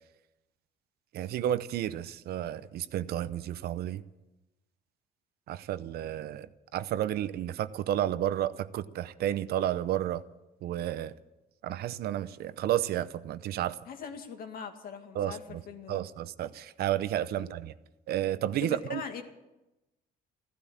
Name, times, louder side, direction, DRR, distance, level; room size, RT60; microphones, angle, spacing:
voice 1, 1.1-4.0 5.5-6.5 6.7-10.2 10.6-11.1 11.6-13.8 15.2-15.6 15.9-17.7 18.1-19.0, right 12 dB, 70° right, 0.8 m, -31 dB
voice 2, 13.9-16.0 17.4-17.5 18.6-19.2, left 6 dB, 60° left, 2.1 m, -41 dB
15.0 x 12.5 x 7.3 m
cardioid pair, 110°, 17 cm